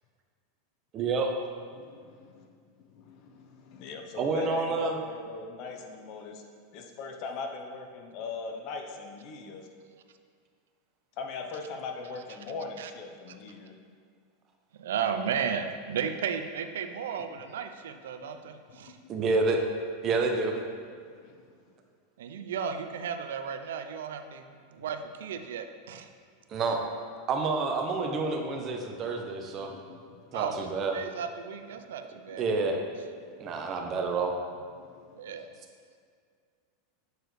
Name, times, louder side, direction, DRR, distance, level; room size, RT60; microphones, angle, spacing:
voice 1, 0.9-1.3 4.2-5.0 19.1-19.6 20.0-20.5 26.5-26.8 27.3-29.7 30.3-30.9 32.4-32.8 33.4-34.3, right 3 dB, 40° right, 3 dB, 0.8 m, -28 dB
voice 2, 1.8-2.4 2.9-6.4 6.7-9.6 11.2-13.7 18.2-18.3 21.2-21.3 29.7-30.4 32.3-32.4 33.2-33.3 34.8-35.4, left 4 dB, 55° left, 3 dB, 0.8 m, -40 dB
voice 3, 14.7-19.0 22.2-24.4 24.7-26.1 30.3-30.7 30.9-32.6 35.2-35.5, right 7 dB, 80° right, 8 dB, 0.4 m, -34 dB
7.9 x 4.5 x 3.2 m, 2.1 s
hypercardioid pair, 100°, 0 cm